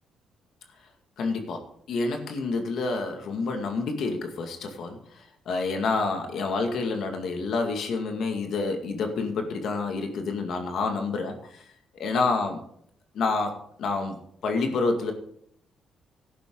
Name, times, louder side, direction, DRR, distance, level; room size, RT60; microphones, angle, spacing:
voice 1, 1.2-5.0 5.5-11.4 11.9-12.6 13.1-14.2 14.4-15.1, left 3 dB, 70° left, 4 dB, 2.1 m, -28 dB
13.0 x 11.0 x 3.9 m, 0.68 s
cardioid pair, 90°, 0 cm